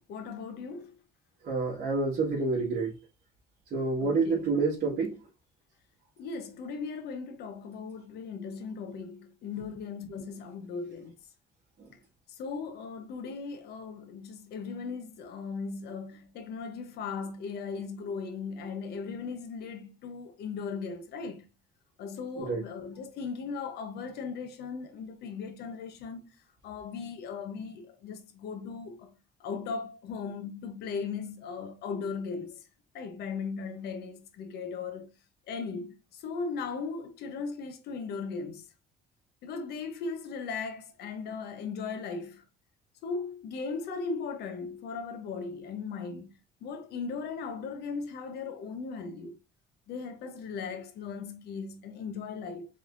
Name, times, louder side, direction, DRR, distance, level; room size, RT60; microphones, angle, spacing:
voice 1, 0.1-0.9 4.0-4.5 6.2-11.1 12.3-21.4 22.0-26.4 26.6-29.1 29.4-32.6 32.9-35.1 35.5-38.6 39.4-42.4 43.0-46.3 46.6-49.4 49.9-52.7, left 5 dB, 75° left, 1.1 m, -38 dB
voice 2, 1.4-2.9 3.7-5.2 22.4-22.6, right 4 dB, 55° right, 1.9 m, -28 dB
5.1 x 3.6 x 2.6 m
cardioid pair, 110°, 17 cm